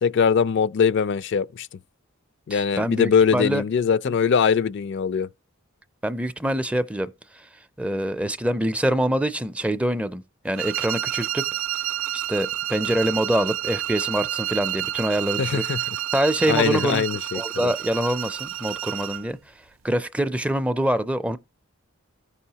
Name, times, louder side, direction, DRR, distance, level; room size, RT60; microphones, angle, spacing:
voice 1, 0.0-1.7 2.5-5.3 15.4-15.8 16.5-17.7, left 6 dB, 60° left, 0.4 m, -22 dB
voice 2, 2.5-3.6 4.1-4.2 6.0-7.1 7.8-11.5 12.1-15.6 16.1-17.0 17.3-19.4 19.8-21.4, right 1 dB, 5° right, 0.4 m, -25 dB
sound 1, 10.6-19.3, right 13 dB, 70° right, 0.5 m, -29 dB
14.5 x 5.5 x 2.8 m
head